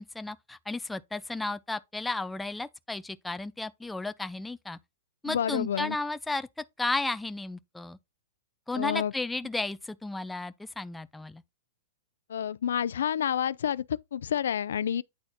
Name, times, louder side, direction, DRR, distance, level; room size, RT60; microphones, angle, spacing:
voice 1, 0.0-4.8 5.2-6.5 6.8-8.0 8.7-11.4, left 2 dB, 5° left, 0.4 m, -33 dB
voice 2, 5.2-6.0 8.7-9.1 12.3-13.8 14.1-15.0, left 9 dB, 85° left, 0.4 m, -29 dB
9.5 x 4.3 x 2.8 m
hypercardioid pair, 165°, 0 cm